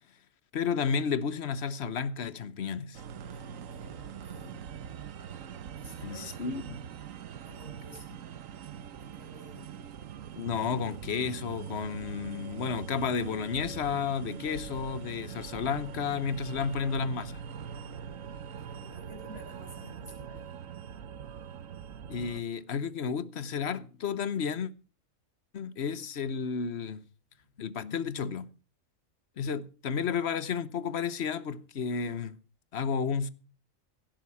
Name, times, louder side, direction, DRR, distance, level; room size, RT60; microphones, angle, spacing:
voice 1, 0.5-3.0 6.0-6.8 10.4-17.4 22.1-24.7 25.5-27.0 27.6-28.5 29.4-32.4 32.7-33.3, left 6 dB, 55° left, 1.2 m, -32 dB
sound 1, 2.9-22.4, right 8 dB, 70° right, 1.2 m, -43 dB
voice 2, 3.8-4.7 5.8-6.3 7.5-8.2 9.0-9.7 18.7-20.5 27.3-27.5 29.9-30.0, equal, 30° right, 5.7 m, -50 dB
17.0 x 10.5 x 4.7 m
omnidirectional pair, 1.4 m